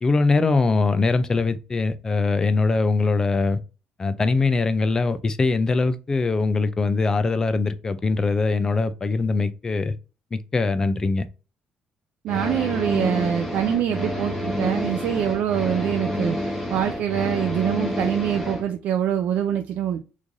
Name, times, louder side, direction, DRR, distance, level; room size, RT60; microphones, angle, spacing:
voice 1, 0.0-3.6 4.0-9.9 10.3-11.2, left 3 dB, 20° left, 0.3 m, -22 dB
voice 2, 12.2-16.4 16.7-20.0, right 10 dB, 70° right, 0.3 m, -24 dB
sound 1, 12.3-18.6, left 1 dB, 5° left, 0.8 m, -28 dB
3.1 x 2.5 x 3.6 m
cardioid pair, 150°, 3 cm